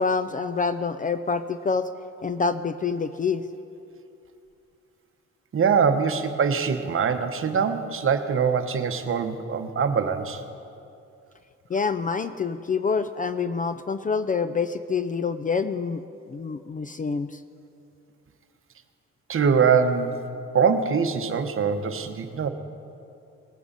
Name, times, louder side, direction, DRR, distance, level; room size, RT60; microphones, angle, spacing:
voice 1, 0.0-1.9 2.2-3.5 11.7-16.0 16.3-17.4, left 5 dB, 25° left, 12 dB, 0.4 m, -26 dB
voice 2, 5.5-10.4 19.3-20.2 20.5-22.5, right 6 dB, 45° right, 8 dB, 1.0 m, -23 dB
19.5 x 9.4 x 4.1 m, 2.6 s
cardioid pair, 90°, 30 cm